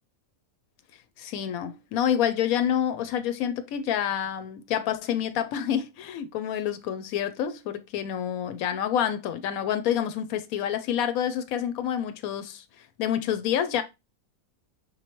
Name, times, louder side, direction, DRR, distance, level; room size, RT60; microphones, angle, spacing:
voice 1, 1.2-12.6 13.0-13.8, left 9 dB, 80° left, 1.0 m, -28 dB
5.3 x 3.1 x 2.9 m
omnidirectional pair, 1.5 m